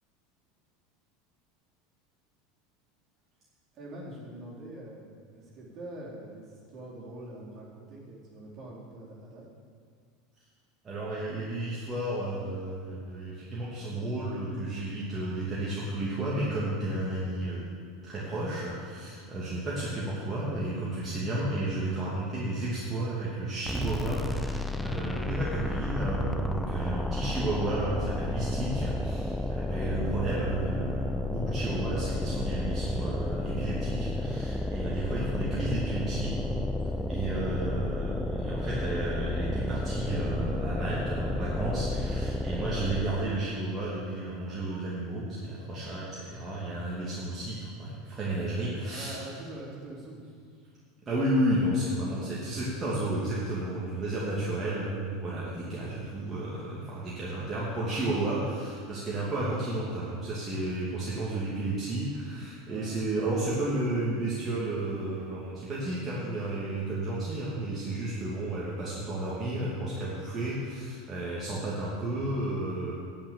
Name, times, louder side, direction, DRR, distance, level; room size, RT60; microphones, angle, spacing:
voice 1, 3.7-9.4 26.6-27.0 35.4-35.5 48.6-50.2 56.5-56.7 58.1-58.3 62.7-62.9, right 1 dB, 40° right, -5 dB, 4.0 m, -44 dB
voice 2, 10.8-17.7 18.0-29.4 29.7-36.3 37.1-49.2 51.1-72.9, right 1 dB, 25° right, -7 dB, 2.6 m, -32 dB
sound 1, 23.7-43.3, left 1 dB, 5° left, 0.7 m, -32 dB
10.0 x 9.2 x 7.1 m, 2.1 s
figure-of-eight pair, 80°, 0 cm